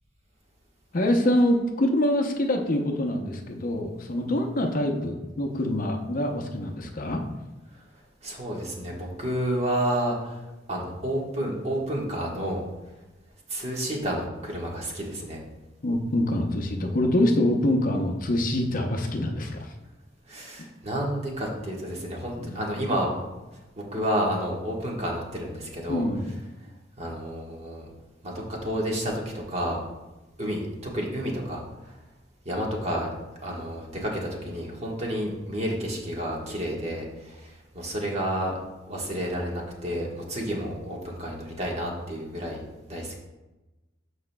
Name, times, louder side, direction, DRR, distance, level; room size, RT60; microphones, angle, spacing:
voice 1, 0.9-7.2 15.8-19.8 22.4-22.6 25.9-26.3, left 1 dB, 45° left, 3 dB, 0.7 m, -25 dB
voice 2, 8.2-10.4 10.7-12.6 13.5-15.4 20.3-23.1 23.8-26.1 27.0-27.9 28.2-29.8 30.4-31.6 32.4-33.1 33.4-38.6 38.9-42.6 42.9-43.2, equal, 35° right, -2 dB, 1.4 m, -30 dB
13.0 x 4.9 x 2.2 m, 1.1 s
head